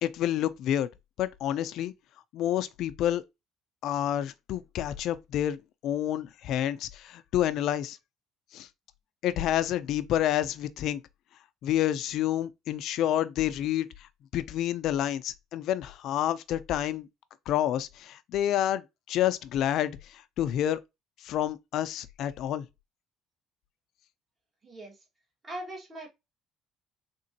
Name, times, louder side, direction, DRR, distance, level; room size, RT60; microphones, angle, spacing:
voice 1, 0.0-0.9 1.2-1.9 2.3-3.2 3.8-8.0 8.5-8.7 9.2-11.0 11.6-17.1 17.5-20.8 21.2-22.6, left 11 dB, 60° left, 0.4 m, -29 dB
voice 2, 24.6-25.0 25.4-26.1, right 1 dB, 25° right, 1.4 m, -40 dB
3.7 x 2.9 x 2.7 m
cardioid pair, 145°, 0 cm